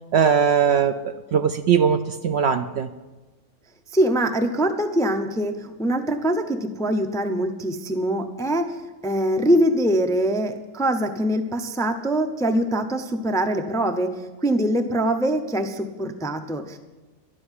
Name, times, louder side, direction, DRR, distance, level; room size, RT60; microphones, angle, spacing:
voice 1, 0.1-2.9, right 7 dB, 65° right, 8 dB, 0.7 m, -20 dB
voice 2, 3.9-8.8 9.0-16.8, right 1 dB, 5° left, 6 dB, 0.5 m, -23 dB
11.5 x 7.7 x 9.7 m, 1.2 s
omnidirectional pair, 1.4 m